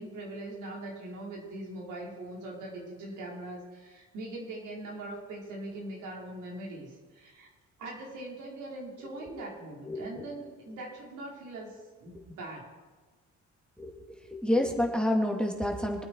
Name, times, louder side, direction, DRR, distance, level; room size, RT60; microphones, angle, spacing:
voice 1, 0.0-7.5 7.8-12.7, right 2 dB, 85° right, -3 dB, 4.8 m, -41 dB
voice 2, 9.8-10.3 13.8-16.0, left 1 dB, 5° left, 1 dB, 2.4 m, -29 dB
24.0 x 8.9 x 4.7 m, 1.3 s
cardioid pair, 90°, 30 cm